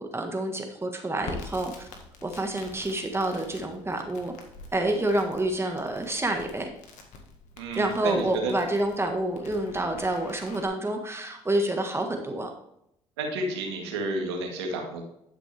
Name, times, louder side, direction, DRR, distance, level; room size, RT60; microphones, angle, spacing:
voice 1, 0.0-1.9 2.2-4.3 4.7-6.7 7.7-12.5, right 1 dB, 20° right, 4 dB, 1.6 m, -28 dB
Crackle, 1.2-10.7, left 3 dB, 65° left, 1.8 m, -46 dB
voice 2, 7.6-8.5 13.2-15.0, right 2 dB, 85° right, 2 dB, 1.9 m, -31 dB
11.0 x 6.1 x 3.4 m, 0.78 s
hypercardioid pair, 55°, 13 cm